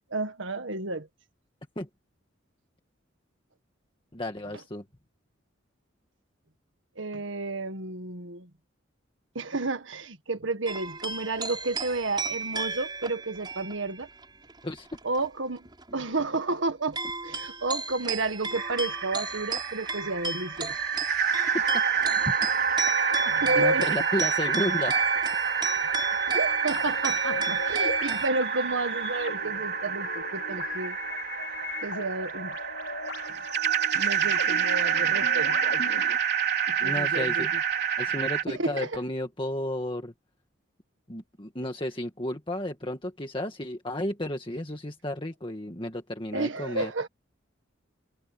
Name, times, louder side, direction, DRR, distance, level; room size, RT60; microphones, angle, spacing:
voice 1, 0.1-1.1 7.0-8.5 9.3-14.1 15.0-15.7 15.9-17.0 17.2-20.8 23.2-24.0 26.3-31.0 31.8-32.6 33.9-36.0 36.7-37.6 38.5-39.0 46.3-47.1, right 2 dB, 75° right, 1.7 m, -31 dB
voice 2, 4.1-4.8 14.6-14.9 21.7-22.4 23.6-24.9 36.8-37.5 38.0-40.1 41.1-46.9, left 1 dB, 25° left, 1.8 m, -33 dB
sound 1, 10.7-15.3 15.6-16.4 16.9-28.3, right 4 dB, 20° right, 4.9 m, -33 dB
sound 2, 18.6-38.4, right 7 dB, 55° right, 4.3 m, -28 dB
sound 3, 26.4-36.2, left 3 dB, 75° left, 4.7 m, -39 dB
head